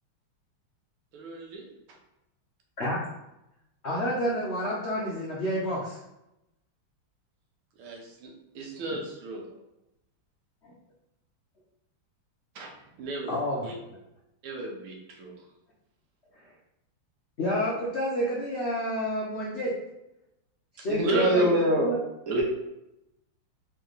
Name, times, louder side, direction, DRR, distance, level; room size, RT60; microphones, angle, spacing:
voice 1, 1.1-1.7 7.8-9.4 12.6-12.7 13.0-13.4 13.6-13.7 14.4-15.3 21.0-21.4 22.3-22.4, right 1 dB, 80° right, 0 dB, 1.7 m, -34 dB
voice 2, 3.8-6.0 13.3-14.0 17.4-19.7 20.7-22.0, equal, 85° left, -5 dB, 0.5 m, -29 dB
voice 3, 20.9-21.9 22.3-22.4, right 1 dB, 60° right, -2 dB, 0.9 m, -23 dB
4.1 x 3.4 x 3.9 m, 0.89 s
omnidirectional pair, 2.4 m